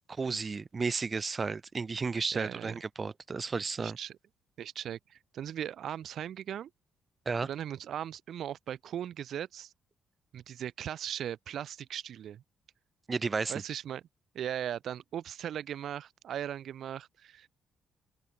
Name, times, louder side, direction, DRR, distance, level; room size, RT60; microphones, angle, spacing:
voice 1, 0.1-4.0 7.3-7.5 13.1-13.5, right 4 dB, 35° right, 0.7 m, -33 dB
voice 2, 2.3-2.8 3.8-4.2 4.6-6.7 7.4-9.7 10.3-12.4 13.5-14.0 14.3-17.5, right 10 dB, 65° right, 1.8 m, -38 dB
open air
cardioid pair, 90°, 0 cm